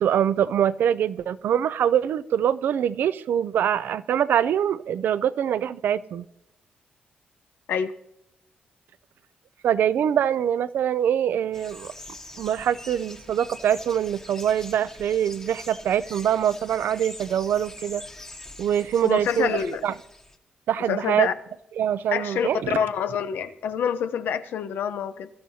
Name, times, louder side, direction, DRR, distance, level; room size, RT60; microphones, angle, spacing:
voice 1, 0.0-6.2 9.6-11.9 12.4-18.0 18.6-19.6 19.8-19.9 20.7-21.3 21.8-22.8, right 9 dB, 75° right, 0.5 m, -24 dB
sound 1, 11.5-20.4, left 1 dB, 15° left, 1.3 m, -44 dB
voice 2, 19.0-19.8 20.9-21.3 22.1-25.3, left 8 dB, 80° left, 0.8 m, -27 dB
23.5 x 12.5 x 2.8 m
cardioid pair, 90°, 3 cm